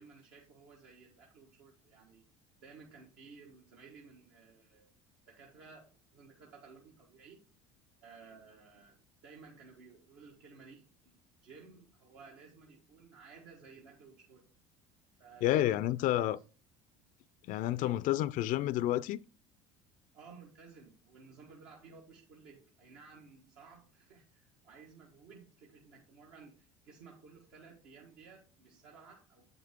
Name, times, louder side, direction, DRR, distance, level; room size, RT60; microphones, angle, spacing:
voice 1, 0.0-2.2 2.6-4.9 5.3-7.4 8.0-14.4 15.2-16.2 17.8-18.0 20.1-29.5, right 5 dB, 70° right, 1.5 m, -56 dB
voice 2, 15.4-16.4 17.5-19.2, left 13 dB, 55° left, 0.4 m, -30 dB
8.3 x 5.9 x 3.6 m
hypercardioid pair, 75°, 16 cm